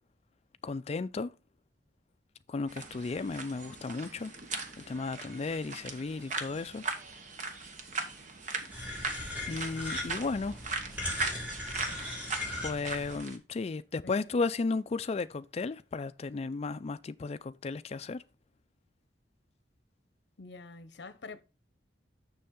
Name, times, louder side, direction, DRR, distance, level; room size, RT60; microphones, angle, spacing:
voice 1, 0.6-1.3 2.5-4.3 4.8-6.8 9.5-10.6 12.6-18.2, left 3 dB, 35° left, 0.3 m, -34 dB
sound 1, 2.7-13.4, right 3 dB, 40° right, 1.0 m, -39 dB
sound 2, 8.7-13.2, left 1 dB, 10° right, 2.8 m, -38 dB
voice 2, 20.4-21.4, left 3 dB, 65° left, 0.7 m, -46 dB
6.9 x 6.3 x 3.7 m
head